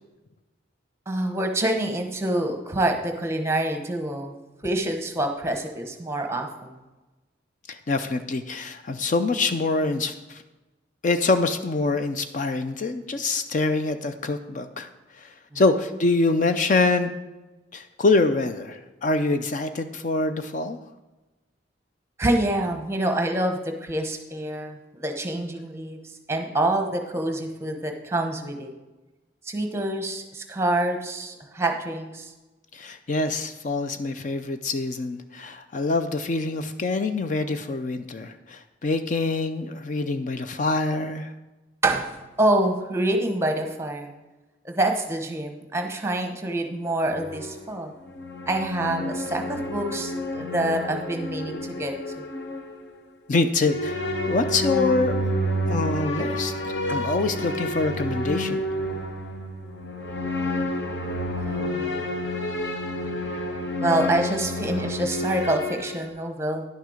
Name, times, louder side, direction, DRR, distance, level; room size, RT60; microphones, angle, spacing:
voice 1, 1.1-4.3 4.6-6.7 15.5-15.6 22.2-26.0 26.3-28.7 29.4-32.3 41.8-42.1 42.4-44.1 44.6-47.9 48.5-52.3 61.4-62.1 63.8-66.6, right 1 dB, 15° right, 4 dB, 0.9 m, -26 dB
voice 2, 7.7-10.4 11.0-14.9 15.2-17.1 17.7-20.8 32.7-41.3 53.3-55.3 55.7-58.6, left 3 dB, 40° left, 9 dB, 0.4 m, -25 dB
sound 1, 47.1-53.0 53.6-66.1, left 1 dB, 65° left, 1.1 m, -30 dB
10.5 x 6.6 x 4.9 m, 1.1 s
head